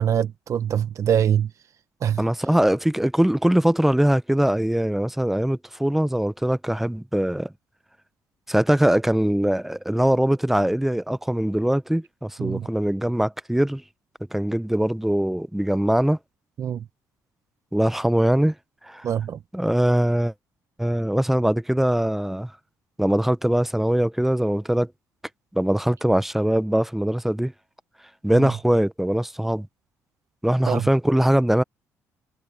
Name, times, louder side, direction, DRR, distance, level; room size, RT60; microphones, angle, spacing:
voice 1, 0.0-1.5 2.0-2.2 12.4-12.7 16.6-16.8 19.0-19.4 28.3-28.5 30.7-30.8, right 9 dB, 55° right, 1.0 m, -23 dB
voice 2, 2.2-7.5 8.5-13.8 14.3-16.2 17.7-18.5 18.8-19.1 19.5-20.3 20.8-22.5 23.0-24.9 25.5-27.5 28.2-29.7 30.4-31.6, right 1 dB, 5° right, 0.7 m, -22 dB
cardioid pair, 90°, 7 cm